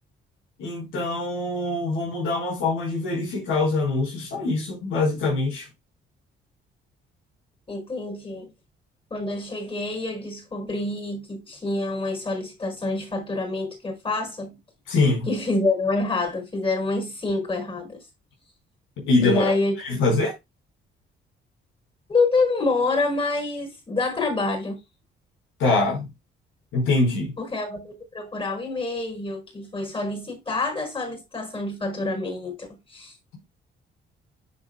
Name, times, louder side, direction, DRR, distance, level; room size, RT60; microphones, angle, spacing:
voice 1, 0.6-5.7 14.9-15.3 19.0-19.5 19.8-20.3 25.6-26.0 26.7-27.4, left 3 dB, 85° left, 4.5 m, -23 dB
voice 2, 7.7-8.5 9.1-14.6 15.3-18.0 19.2-19.7 20.0-20.1 22.1-24.8 27.4-33.1, left 3 dB, 25° left, 5.3 m, -27 dB
9.8 x 7.0 x 2.2 m
cardioid pair, 90°, 20 cm